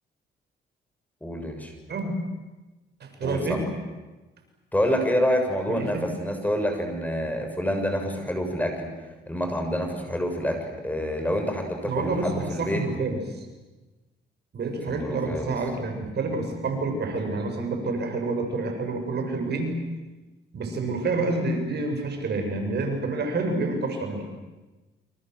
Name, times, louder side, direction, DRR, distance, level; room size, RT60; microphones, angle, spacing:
voice 1, 1.2-1.7 3.2-3.6 4.7-8.9 9.3-12.8 14.9-15.5, equal, 10° left, 4 dB, 6.7 m, -27 dB
voice 2, 3.0-3.6 5.7-6.0 11.8-13.5 14.5-19.8 20.5-24.2, right 3 dB, 55° right, 4 dB, 6.8 m, -28 dB
28.5 x 26.5 x 7.8 m, 1.1 s
cardioid pair, 90°, 20 cm